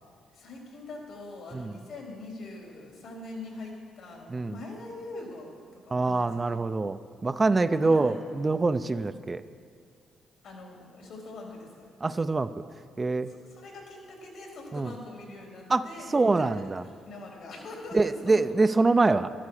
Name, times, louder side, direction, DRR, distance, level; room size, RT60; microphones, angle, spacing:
voice 1, 0.3-6.3 7.8-8.2 10.4-11.9 13.3-16.5 16.8-18.4, left 2 dB, 75° left, -1 dB, 3.7 m, -43 dB
voice 2, 5.9-9.4 12.0-12.5 13.0-13.3 14.7-14.9 15.7-15.8 16.1-16.8 17.9-19.3, right 3 dB, 25° right, 11 dB, 0.4 m, -25 dB
12.5 x 12.5 x 4.9 m, 2.1 s
cardioid pair, 90°, 0 cm